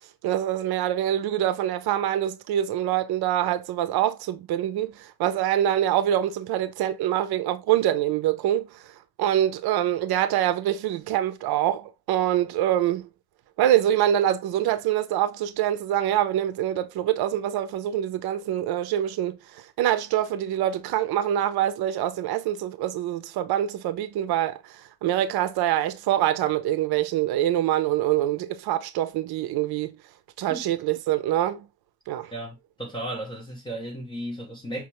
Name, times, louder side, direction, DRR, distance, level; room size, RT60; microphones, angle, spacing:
voice 1, 0.2-8.9 9.2-13.1 13.6-30.0 30.4-31.6 32.1-32.3, right 12 dB, 80° right, 0.5 m, -25 dB
voice 2, 32.3-34.9, right 1 dB, 15° left, 0.6 m, -35 dB
5.8 x 2.2 x 2.9 m
cardioid pair, 165°, 37 cm